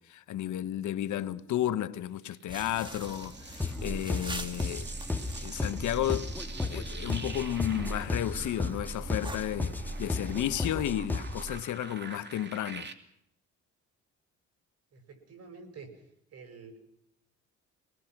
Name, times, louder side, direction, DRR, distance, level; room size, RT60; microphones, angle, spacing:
voice 1, 0.0-4.9 5.4-6.3 6.6-12.9, left 12 dB, 75° left, 1.1 m, -33 dB
sound 1, 2.3-12.9, right 4 dB, 35° right, 2.5 m, -47 dB
sound 2, 2.5-10.7, right 1 dB, 15° right, 2.3 m, -45 dB
sound 3, 3.6-11.6, left 2 dB, 5° left, 1.6 m, -34 dB
voice 2, 14.9-15.9 16.3-16.8, right 4 dB, 55° right, 6.3 m, -48 dB
25.0 x 20.0 x 6.0 m
cardioid pair, 90°, 30 cm